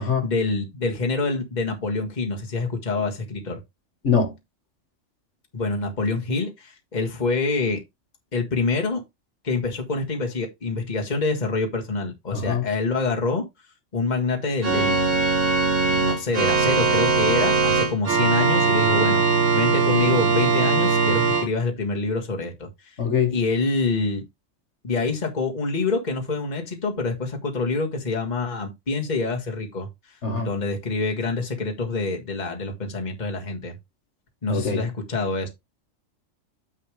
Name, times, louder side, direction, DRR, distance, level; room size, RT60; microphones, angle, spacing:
voice 1, 0.0-3.6 5.5-7.8 8.3-9.0 9.4-13.4 13.9-15.2 15.8-19.2 19.5-23.0 23.3-24.2 24.8-33.8 34.4-35.5, left 3 dB, 35° left, 1.7 m, -26 dB
voice 2, 12.3-12.6 23.0-23.3 30.2-30.5 34.5-34.8, left 6 dB, 60° left, 2.0 m, -23 dB
Organ, 14.6-21.5, right 4 dB, 70° right, 1.8 m, -20 dB
9.6 x 3.4 x 4.9 m
omnidirectional pair, 1.4 m